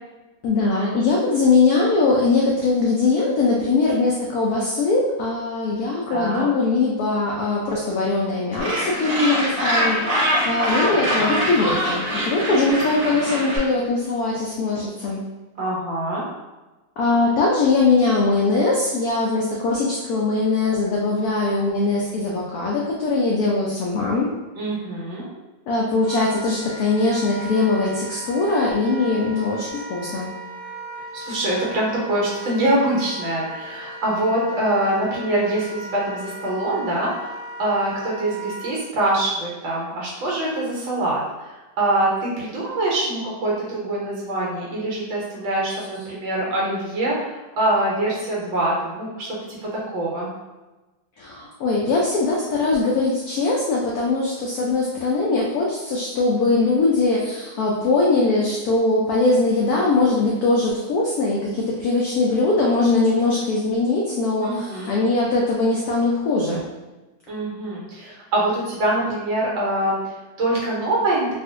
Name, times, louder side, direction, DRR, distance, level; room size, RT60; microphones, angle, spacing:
voice 1, 0.4-15.2 17.0-24.3 25.7-30.3 51.2-66.6, left 3 dB, 85° left, -3 dB, 0.8 m, -21 dB
voice 2, 6.1-6.5 15.6-16.2 24.5-25.3 31.1-50.3 64.4-64.9 67.3-71.3, right 1 dB, 75° right, -4 dB, 1.6 m, -24 dB
Gull seagull, 8.6-13.6, equal, 25° right, 1.4 m, -23 dB
Wind instrument woodwind instrument, 26.0-38.7, right 1 dB, 55° left, 1.0 m, -37 dB
3.6 x 2.4 x 2.4 m, 1.1 s
omnidirectional pair, 2.2 m